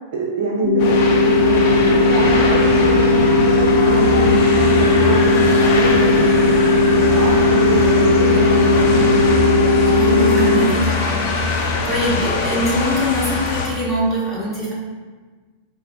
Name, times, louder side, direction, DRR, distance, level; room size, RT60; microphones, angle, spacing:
voice 1, 0.1-3.2 3.5-5.4 5.7-9.4, right 2 dB, 55° right, -2 dB, 0.4 m, -26 dB
sound 1, 0.6-10.6, left 2 dB, 65° left, 1.0 m, -16 dB
sound 2, 0.8-13.7, left 3 dB, 50° left, 0.5 m, -23 dB
sound 3, 1.5-9.3, equal, 30° left, 0.8 m, -30 dB
voice 2, 9.9-14.7, equal, 5° right, -7 dB, 1.0 m, -23 dB
4.0 x 2.5 x 2.7 m, 1.4 s
figure-of-eight pair, 90°, 0 cm